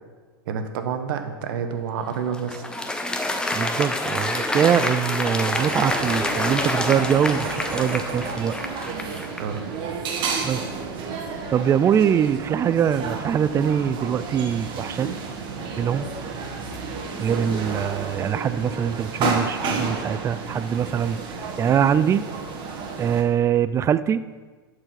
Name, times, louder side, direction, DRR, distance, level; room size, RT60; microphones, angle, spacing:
voice 1, 0.5-2.6 9.4-9.6, right 7 dB, 65° right, 7 dB, 1.1 m, -28 dB
Applause, 2.0-9.6, left 1 dB, 5° left, 0.9 m, -27 dB
voice 2, 3.5-8.6 10.4-10.7 11.5-15.1 15.8-16.1 17.2-22.3 23.0-24.2, right 8 dB, 20° right, 15 dB, 0.4 m, -23 dB
sound 1, 5.5-23.2, right 4 dB, 40° right, 1.7 m, -31 dB
11.0 x 4.8 x 5.8 m, 1.4 s
hypercardioid pair, 105°, 13 cm